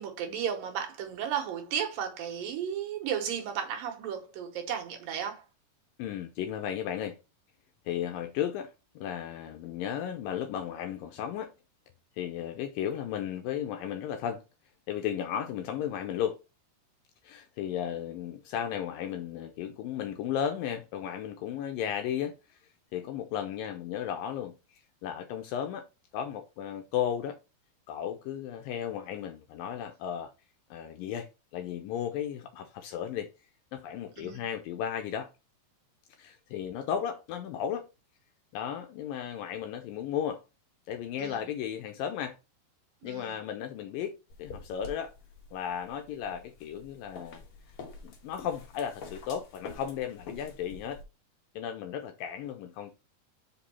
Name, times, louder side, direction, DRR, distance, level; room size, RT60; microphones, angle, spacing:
voice 1, 0.0-5.5 34.2-34.4 41.2-41.5 43.0-43.4, right 8 dB, 70° right, 2.6 m, -34 dB
voice 2, 6.0-7.2 7.9-11.5 12.2-14.4 14.9-16.4 17.2-22.6 22.9-24.5 25.0-25.9 26.1-27.4 27.9-30.3 30.7-31.3 31.5-33.3 33.7-35.3 36.2-37.9 38.5-40.4 40.9-42.4 43.0-45.1 45.5-47.4 48.0-51.0 51.6-52.9, left 9 dB, 80° left, 2.1 m, -34 dB
sound 1, 44.3-51.0, left 4 dB, 65° left, 1.4 m, -47 dB
5.3 x 5.1 x 4.2 m
omnidirectional pair, 4.5 m